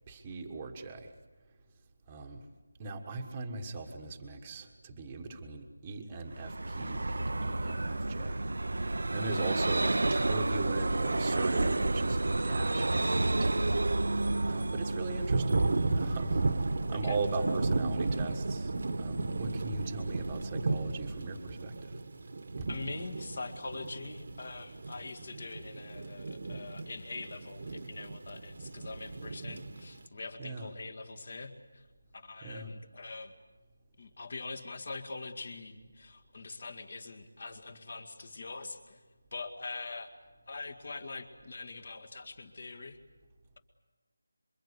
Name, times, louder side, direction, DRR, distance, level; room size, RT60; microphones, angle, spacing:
voice 1, 0.1-1.1 2.1-2.4 2.8-8.4 8.7-13.8 14.1-15.6 16.0-18.7 19.0-22.0 22.6-22.7 30.4-30.7 32.4-32.7, right 3 dB, 15° right, 1 dB, 1.4 m, -39 dB
Vehicle, 6.3-21.7, right 2 dB, 70° right, 0.8 m, -32 dB
Thunder / Rain, 11.9-30.0, right 3 dB, 40° right, 1.3 m, -35 dB
voice 2, 22.7-31.9 32.1-33.3 34.0-39.0 39.3-40.1 40.5-43.0, left 3 dB, 40° left, 8 dB, 2.1 m, -43 dB
27.0 x 24.0 x 8.3 m, 1.2 s
figure-of-eight pair, 175°, 0 cm